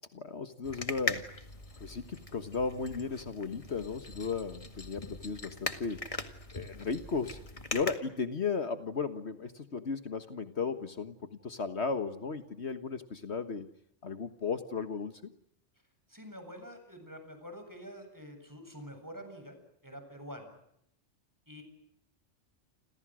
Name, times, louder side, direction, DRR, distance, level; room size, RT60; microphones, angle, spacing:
voice 1, 0.1-1.2 1.8-6.0 6.5-7.4 7.7-13.7 14.0-15.3, left 5 dB, 65° left, 10 dB, 1.7 m, -35 dB
sound 1, 0.6-8.0, left 2 dB, 30° left, 2.1 m, -40 dB
voice 2, 16.1-19.6 19.8-20.6 21.5-21.6, equal, 15° right, 6 dB, 7.8 m, -47 dB
29.5 x 27.5 x 6.3 m, 0.73 s
omnidirectional pair, 1.2 m